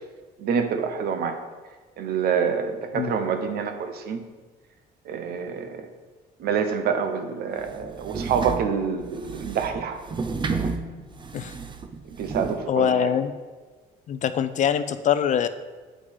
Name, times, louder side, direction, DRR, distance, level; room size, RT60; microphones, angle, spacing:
voice 1, 0.4-1.4 2.0-4.2 5.1-5.9 6.4-10.0 12.1-13.1, right 6 dB, 65° right, 7 dB, 1.0 m, -27 dB
sound 1, 7.6-12.6, right 4 dB, 30° right, 0.6 m, -32 dB
voice 2, 12.7-13.3 14.1-15.5, left 9 dB, 45° left, 11 dB, 0.5 m, -23 dB
8.7 x 5.0 x 5.2 m, 1.3 s
cardioid pair, 110°, 17 cm